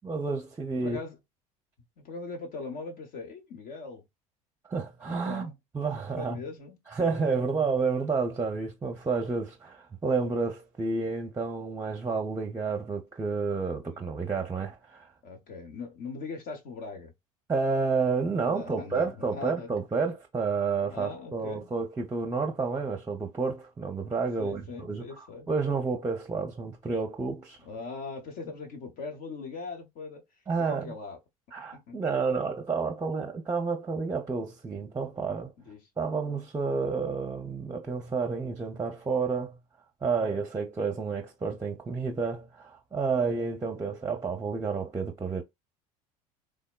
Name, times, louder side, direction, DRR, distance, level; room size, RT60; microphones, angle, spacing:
voice 1, 0.0-1.0 4.7-6.4 6.9-15.1 17.5-27.6 30.5-30.9 31.5-35.5 36.0-39.6 40.0-45.4, right 4 dB, 15° right, 0.6 m, -30 dB
voice 2, 0.8-1.2 2.0-4.0 5.1-5.5 6.2-6.8 13.8-14.0 14.4-14.5 15.2-17.1 18.4-19.7 20.9-21.7 24.4-25.5 27.6-30.2 30.6-31.2 31.7-32.0 35.6-35.8, left 4 dB, 60° left, 0.9 m, -40 dB
3.4 x 2.1 x 2.2 m
hypercardioid pair, 75°, 18 cm